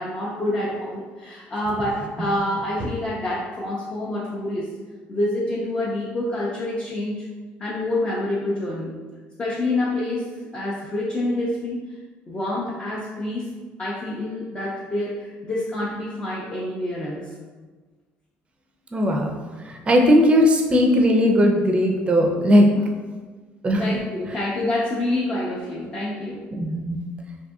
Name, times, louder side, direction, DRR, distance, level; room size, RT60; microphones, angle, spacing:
voice 1, 0.0-4.7 5.1-7.3 7.6-8.9 9.4-10.3 10.5-12.0 12.3-13.5 13.8-17.3 23.8-26.4, left 1 dB, 25° left, -6 dB, 0.5 m, -27 dB
voice 2, 18.9-23.0 23.6-23.9 26.5-27.0, equal, 25° right, 2 dB, 0.4 m, -18 dB
2.6 x 2.5 x 2.3 m, 1.4 s
supercardioid pair, 90°, 5 cm